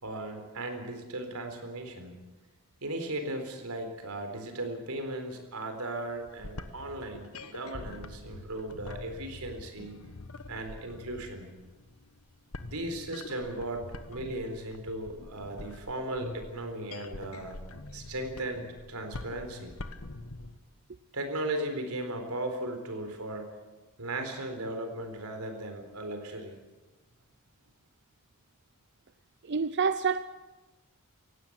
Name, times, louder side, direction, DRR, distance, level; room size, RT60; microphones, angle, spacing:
voice 1, 0.0-2.2 2.8-10.0 10.5-11.5 12.6-17.6 17.9-19.8 21.1-23.5 24.0-26.5, right 1 dB, 90° right, 6 dB, 4.0 m, -37 dB
sound 1, 6.2-20.6, left 2 dB, 80° left, 1.3 m, -45 dB
voice 2, 29.4-30.2, right 5 dB, 50° right, 12 dB, 0.6 m, -27 dB
18.0 x 16.0 x 9.8 m, 1.2 s
head